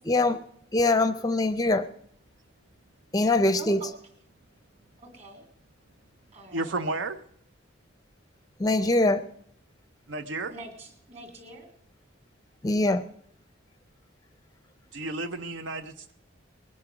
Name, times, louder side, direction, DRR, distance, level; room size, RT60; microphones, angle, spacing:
voice 1, 0.1-0.4 0.7-1.9 3.1-3.8 8.6-9.2 12.6-13.0, left 2 dB, 20° left, 12 dB, 0.5 m, -23 dB
voice 2, 3.6-3.9 5.0-5.5 6.3-6.8 10.5-11.7, right 1 dB, 35° right, 5 dB, 3.4 m, -44 dB
voice 3, 6.5-7.2 10.1-10.5 14.9-16.1, right 2 dB, 75° right, 10 dB, 0.7 m, -32 dB
20.5 x 9.6 x 6.0 m, 0.70 s
head